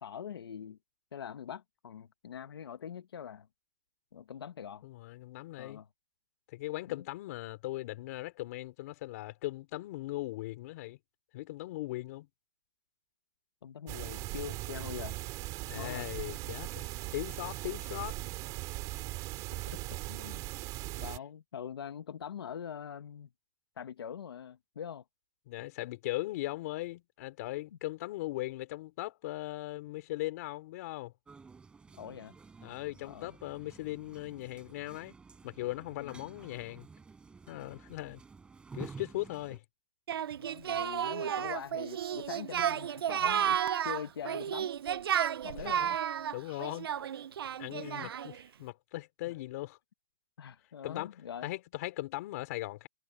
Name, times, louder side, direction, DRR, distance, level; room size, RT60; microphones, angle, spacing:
voice 1, 0.0-0.8 1.1-3.5 4.1-4.8 5.6-5.9 6.9-7.0 13.6-15.2 15.7-16.0 19.7-19.8 20.1-20.4 21.0-23.3 23.8-25.0 32.0-32.3 33.0-33.3 35.9-36.3 40.4-43.6 43.8-44.7 45.4-45.9 47.7-48.1 49.3-49.4 50.4-51.5, left 8 dB, 85° left, 1.5 m, -43 dB
voice 2, 4.8-5.8 6.5-11.0 11.3-12.3 15.7-16.8 17.1-18.2 25.5-31.1 32.6-35.1 35.4-36.9 37.5-38.2 38.7-39.6 45.5-46.0 46.3-46.9 47.6-49.8 50.8-51.1 51.4-52.9, left 18 dB, 40° left, 3.9 m, -39 dB
sound 1, 13.9-21.2, right 20 dB, 25° right, 3.6 m, -39 dB
sound 2, 31.2-39.6, right 4 dB, 10° right, 6.6 m, -51 dB
Singing, 40.1-48.4, right 9 dB, 80° right, 0.6 m, -32 dB
hypercardioid pair, 160°, 12 cm